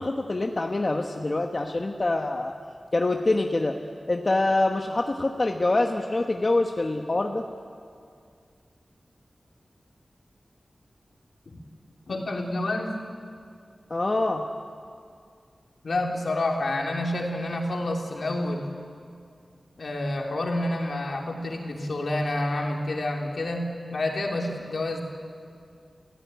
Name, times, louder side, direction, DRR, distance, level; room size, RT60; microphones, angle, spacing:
voice 1, 0.0-2.5 2.9-3.8 4.1-7.4 13.9-14.4, left 2 dB, 40° left, 3 dB, 1.3 m, -25 dB
voice 2, 12.1-12.9 15.8-18.6 19.8-25.0, left 1 dB, 70° left, 1 dB, 3.6 m, -28 dB
29.5 x 16.0 x 9.4 m, 2.3 s
wide cardioid pair, 75°, 0 cm